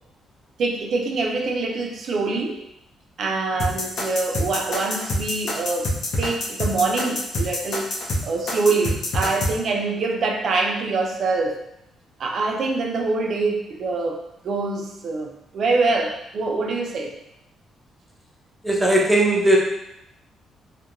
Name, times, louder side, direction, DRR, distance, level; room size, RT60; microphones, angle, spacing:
voice 1, 0.6-2.6 3.2-5.9 6.2-8.0 8.2-11.6 12.2-17.1, right 3 dB, 60° right, 2 dB, 0.4 m, -24 dB
sound 1, 3.6-9.5, left 1 dB, 70° left, 0.6 m, -25 dB
voice 2, 18.6-19.6, right 1 dB, 5° right, -3 dB, 0.5 m, -18 dB
2.7 x 2.1 x 2.5 m, 0.81 s
cardioid pair, 90°, 0 cm